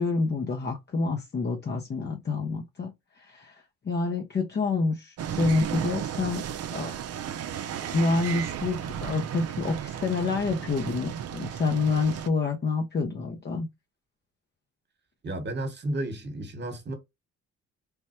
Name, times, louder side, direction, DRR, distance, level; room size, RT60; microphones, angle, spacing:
voice 1, 0.0-2.9 3.2-6.5 6.7-7.0 7.9-13.7, left 3 dB, 35° left, 0.7 m, -28 dB
sound 1, 5.2-12.3, right 9 dB, 55° right, 0.5 m, -34 dB
voice 2, 15.2-17.0, right 1 dB, 35° right, 1.2 m, -32 dB
3.4 x 2.1 x 4.2 m
cardioid pair, 90°, 30 cm